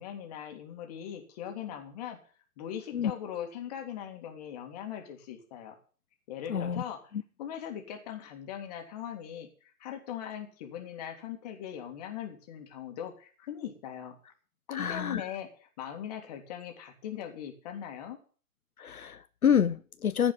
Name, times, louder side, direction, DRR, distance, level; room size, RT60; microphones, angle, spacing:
voice 1, 0.0-2.2 2.6-5.8 6.3-7.1 7.4-14.2 14.7-18.2, left 9 dB, 25° left, 2.2 m, -40 dB
voice 2, 6.5-6.8 14.7-15.2 18.8-20.3, left 8 dB, 75° left, 0.7 m, -27 dB
15.0 x 5.2 x 9.4 m
figure-of-eight pair, 135°, 44 cm